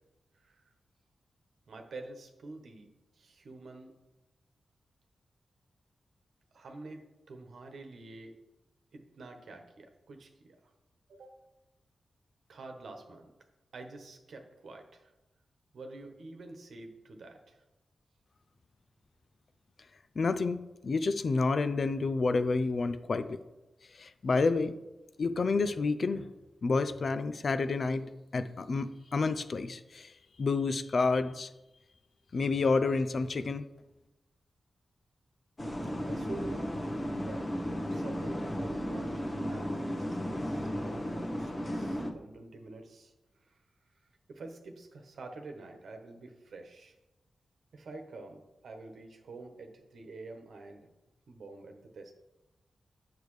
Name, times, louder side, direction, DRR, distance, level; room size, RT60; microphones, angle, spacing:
voice 1, 0.4-0.7 1.7-2.9 3.2-3.9 6.5-7.0 7.3-8.4 8.9-10.6 11.1-11.4 12.5-13.3 13.7-15.1 15.7-17.6 36.1-37.5 37.9-43.1 43.4-43.6 44.3-46.9 47.7-50.8 51.3-52.1, right 3 dB, 80° right, 4 dB, 1.1 m, -47 dB
voice 2, 20.2-23.4 24.0-24.7 25.2-26.3 26.6-30.1 30.4-31.5 32.3-33.7, left 4 dB, 60° left, 12 dB, 0.5 m, -29 dB
sound 1, 35.6-42.1, equal, 35° left, 1.0 m, -34 dB
8.6 x 6.6 x 3.2 m, 0.99 s
cardioid pair, 55°, 0 cm